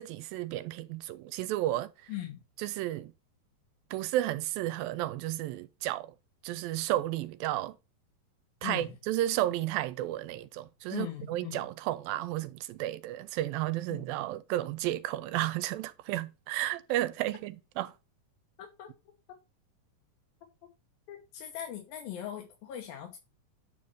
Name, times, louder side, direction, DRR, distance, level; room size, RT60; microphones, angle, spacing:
voice 1, 0.0-1.9 2.6-3.1 3.9-6.1 6.4-7.8 8.6-17.9, right 14 dB, 90° right, 2.5 m, -32 dB
voice 2, 2.1-2.4 8.6-9.0 10.9-11.7 13.9-14.0 18.6-18.9 21.1-23.2, left 11 dB, 85° left, 2.9 m, -40 dB
9.3 x 3.2 x 5.2 m
omnidirectional pair, 4.0 m